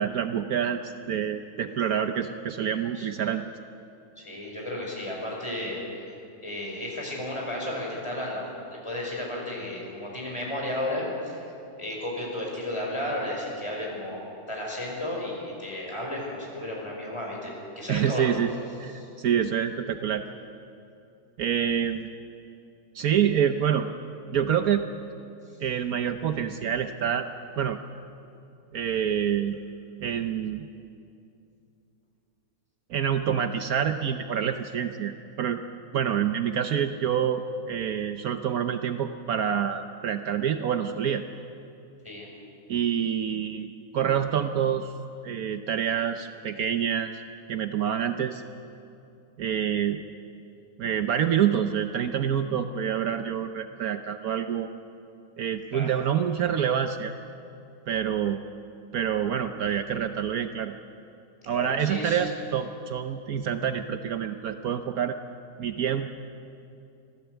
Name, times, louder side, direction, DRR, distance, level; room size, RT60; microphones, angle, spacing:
voice 1, 0.0-3.5 17.9-18.5 18.8-20.2 21.4-22.1 22.9-23.9 24.3-24.9 25.6-27.3 27.6-27.8 28.7-29.6 30.0-30.7 32.9-35.6 35.9-41.2 42.7-44.9 45.2-47.1 47.5-48.4 49.4-50.0 50.8-54.7 55.4-57.1 57.9-58.4 58.9-60.7 61.5-65.2 65.6-66.1, right 8 dB, 70° right, 8 dB, 1.2 m, -27 dB
voice 2, 4.2-5.8 6.4-8.5 8.7-11.5 11.8-18.3 19.0-19.1 40.3-40.4 42.0-42.3 55.7-55.9 61.5-62.2, left 1 dB, 15° left, -2 dB, 5.7 m, -33 dB
25.5 x 17.0 x 8.1 m, 2.7 s
omnidirectional pair, 1.7 m